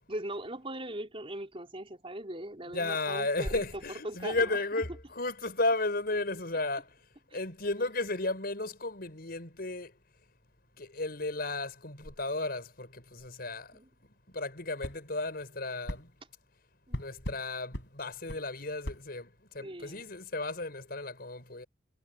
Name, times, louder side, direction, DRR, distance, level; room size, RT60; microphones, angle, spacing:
voice 1, 0.1-4.8 13.7-13.9 16.9-17.0 19.6-20.1, right 1 dB, 30° right, 4.2 m, -40 dB
voice 2, 2.7-6.8 7.3-9.9 10.8-13.7 14.3-16.1 17.0-19.3 19.5-21.7, left 2 dB, 55° left, 5.9 m, -34 dB
sound 1, 14.8-15.0 15.9-16.0 16.9-17.4 17.7-17.9 18.3-18.4 18.8-19.0, equal, 75° left, 7.8 m, -37 dB
head